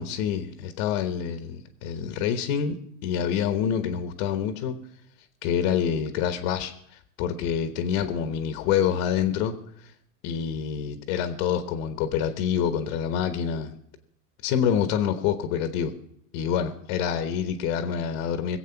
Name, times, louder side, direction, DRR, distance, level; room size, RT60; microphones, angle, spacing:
voice 1, 0.0-4.8 5.4-9.9 10.2-13.7 14.4-15.9 16.3-18.6, left 8 dB, 55° left, 8 dB, 1.3 m, -27 dB
20.5 x 8.1 x 5.8 m, 0.72 s
supercardioid pair, 130°, 47 cm